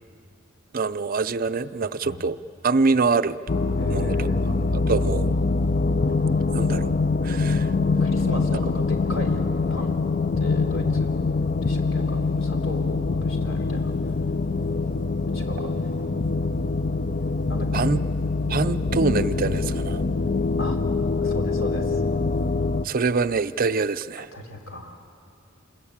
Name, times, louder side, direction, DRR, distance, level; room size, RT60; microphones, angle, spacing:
voice 1, 0.7-2.4 2.6-3.4 3.9-4.3 4.9-5.3 6.5-6.9 7.2-7.7 17.7-18.0 18.5-20.0 22.8-24.3, right 4 dB, 45° right, 12 dB, 0.5 m, -24 dB
sound 1, 3.5-22.9, left 3 dB, 40° left, 0.5 m, -24 dB
voice 2, 3.8-4.4 8.0-9.4 9.7-10.0 10.4-11.1 11.6-13.9 15.3-15.7 17.5-17.8 20.6-20.8 21.2-22.0 24.2-25.0, equal, 70° left, 3 dB, 3.4 m, -35 dB
27.5 x 21.5 x 8.7 m, 2.6 s
head